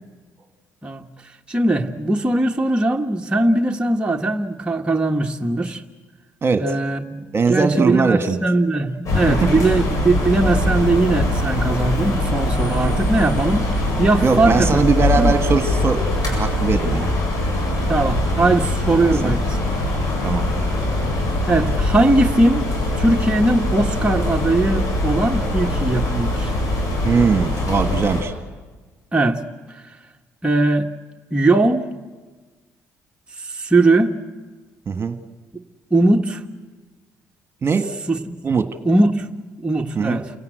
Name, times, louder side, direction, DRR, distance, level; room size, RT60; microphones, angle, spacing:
voice 1, 1.5-5.8 6.6-7.2 7.5-14.8 15.2-15.3 17.9-19.6 21.5-22.6 22.9-26.5 29.1-29.4 29.7-29.8 30.4-30.9 31.3-31.9 33.4-34.1 35.9-36.4 38.1-38.4 38.8-39.2 39.6-40.3, right 2 dB, 15° right, 1 dB, 1.6 m, -19 dB
voice 2, 6.4-6.7 7.3-8.4 9.4-9.5 14.2-17.1 19.2-19.3 20.2-20.4 27.0-28.3 34.9-35.2 37.6-37.9 38.4-38.8 39.9-40.2, right 5 dB, 40° right, 7 dB, 1.7 m, -20 dB
sound 1, 9.1-28.2, left 1 dB, 60° left, 7.9 m, -22 dB
29.0 x 17.5 x 8.0 m, 1.3 s
hypercardioid pair, 55°, 7 cm